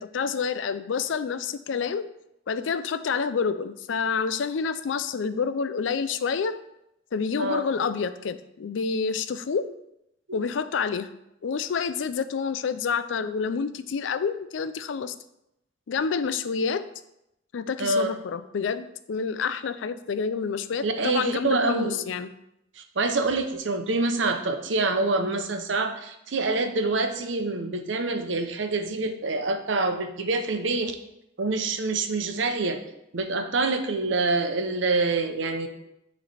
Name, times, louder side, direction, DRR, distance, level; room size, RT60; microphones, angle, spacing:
voice 1, 0.0-2.1 2.5-6.6 7.1-9.7 10.3-11.1 11.4-15.1 15.9-16.8 17.5-22.3, left 5 dB, 90° left, 13 dB, 0.4 m, -28 dB
voice 2, 17.8-18.2 20.8-22.0 22.8-30.9 31.4-32.8 33.1-35.7, right 3 dB, 85° right, 6 dB, 0.8 m, -26 dB
9.1 x 3.3 x 4.2 m, 0.83 s
head